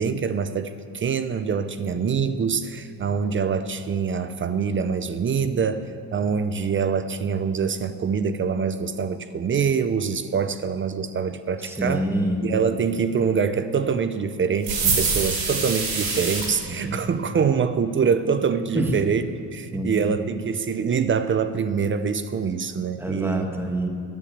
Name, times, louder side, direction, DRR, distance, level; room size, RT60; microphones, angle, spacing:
voice 1, 0.0-12.0 12.4-19.2 19.5-23.5, right 6 dB, 30° right, 12 dB, 0.5 m, -25 dB
voice 2, 11.6-12.5 16.6-17.0 18.7-19.0 19.7-20.1 23.0-23.9, right 1 dB, 5° right, 3 dB, 1.6 m, -27 dB
sound 1, 14.6-16.5, right 4 dB, 65° right, 3.2 m, -24 dB
10.5 x 8.2 x 8.7 m, 2.5 s
cardioid pair, 105°, 39 cm